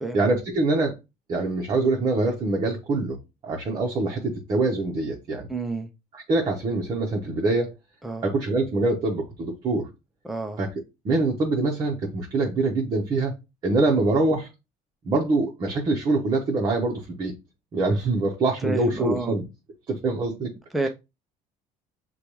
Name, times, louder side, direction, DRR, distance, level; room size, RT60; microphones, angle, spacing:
voice 1, 0.1-0.9 1.3-3.2 3.4-5.5 6.1-7.7 8.2-9.9 10.6-10.7 11.0-13.3 13.6-14.5 15.0-17.3 17.7-19.4 19.9-20.5, right 2 dB, 30° right, 0.7 m, -24 dB
voice 2, 5.5-5.9 8.0-8.3 10.2-10.6 18.6-19.4 20.7-20.9, right 2 dB, ahead, 0.4 m, -29 dB
6.7 x 2.3 x 3.0 m
cardioid pair, 160°, 14 cm